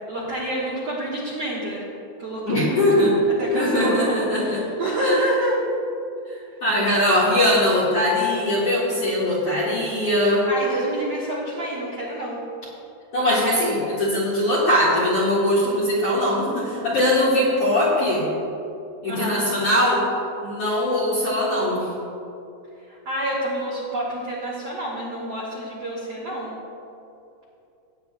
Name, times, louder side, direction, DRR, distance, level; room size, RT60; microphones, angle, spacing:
voice 1, 0.1-1.8 2.2-2.8 3.4-5.5 10.5-12.4 19.1-19.5 22.9-26.5, right 1 dB, 65° right, -6 dB, 1.6 m, -28 dB
voice 2, 2.4-3.1 3.5-4.6 5.0-5.2 6.3-10.5 13.1-18.3 19.0-20.0 20.4-21.9, left 1 dB, 50° left, -6 dB, 2.0 m, -21 dB
19.0 x 9.3 x 2.3 m, 2.7 s
omnidirectional pair, 4.9 m